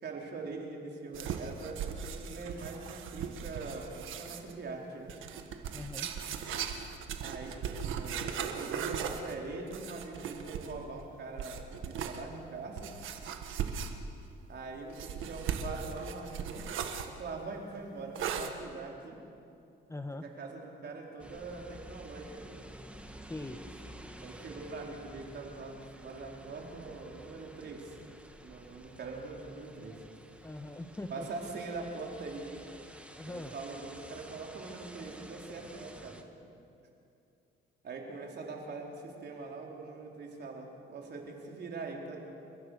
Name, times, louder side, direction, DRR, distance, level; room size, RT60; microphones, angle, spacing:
voice 1, 0.0-5.1 7.2-12.9 14.5-16.7 17.0-19.2 20.2-22.6 24.2-28.0 28.4-30.0 31.1-32.6 33.2-36.2 37.8-42.3, right 3 dB, 55° right, 0 dB, 4.2 m, -43 dB
sound 1, 1.1-4.5 5.1-10.8 11.4-12.2 12.8-14.2 14.9-17.1 18.1-18.5, right 7 dB, 85° right, 1.6 m, -38 dB
voice 2, 5.7-6.1 19.9-20.2 23.3-23.6 30.4-31.3 33.1-33.5, left 2 dB, 15° left, 7 dB, 1.4 m, -41 dB
sound 2, 21.2-36.2, right 1 dB, 5° right, 1.9 m, -51 dB
29.5 x 15.0 x 6.5 m, 2.6 s
cardioid pair, 90°, 20 cm